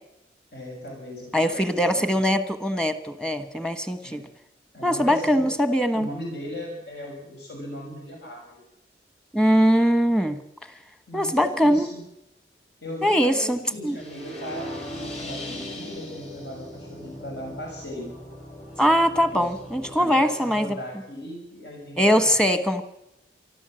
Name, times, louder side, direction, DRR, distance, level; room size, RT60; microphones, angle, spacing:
voice 1, 0.5-2.1 4.0-4.3 4.7-5.3 5.9-8.6 11.1-12.0 12.8-18.1 19.3-19.5 19.9-22.4, left 1 dB, 75° left, 0 dB, 6.8 m, -38 dB
voice 2, 1.3-4.2 4.8-6.1 9.3-10.4 11.1-11.9 13.0-14.0 18.8-20.8 22.0-22.8, equal, 5° left, 10 dB, 1.2 m, -21 dB
sound 1, 14.0-20.0, left 1 dB, 40° left, 5.7 m, -38 dB
24.5 x 13.5 x 7.7 m, 0.83 s
head